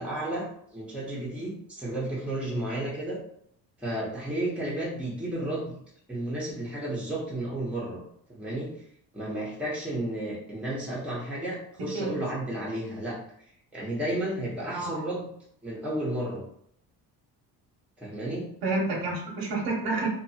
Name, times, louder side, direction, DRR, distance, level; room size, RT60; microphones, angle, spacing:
voice 1, 0.0-3.2 3.8-5.8 6.1-8.0 8.3-8.7 9.1-13.2 13.7-15.3 15.6-16.4 18.0-18.4, right 1 dB, 5° right, -6 dB, 0.9 m, -32 dB
voice 2, 18.6-20.1, right 2 dB, 90° right, -4 dB, 0.8 m, -29 dB
2.6 x 2.2 x 2.7 m, 0.68 s
cardioid pair, 95°, 39 cm